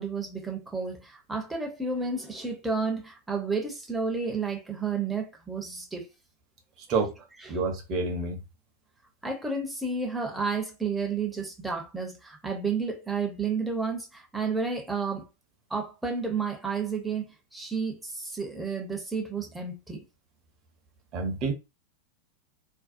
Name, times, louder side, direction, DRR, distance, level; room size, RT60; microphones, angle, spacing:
voice 1, 0.0-6.1 7.4-7.6 9.2-15.3 15.7-17.2 17.5-20.0, right 4 dB, 5° right, 0.8 m, -31 dB
voice 2, 7.5-8.4 21.1-21.5, right 4 dB, 35° right, 0.8 m, -28 dB
2.7 x 2.2 x 2.5 m
figure-of-eight pair, 90°, 0 cm